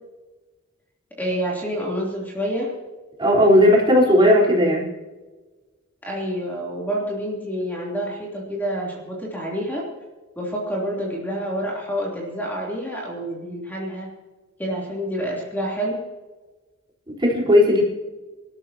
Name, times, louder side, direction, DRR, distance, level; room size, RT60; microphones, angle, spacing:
voice 1, 1.2-2.7 6.0-9.9 10.3-14.1 14.6-16.0, equal, 10° left, -4 dB, 3.3 m, -28 dB
voice 2, 3.2-4.9 17.1-17.8, left 1 dB, 25° right, -4 dB, 4.3 m, -16 dB
27.0 x 13.5 x 3.0 m, 1.2 s
head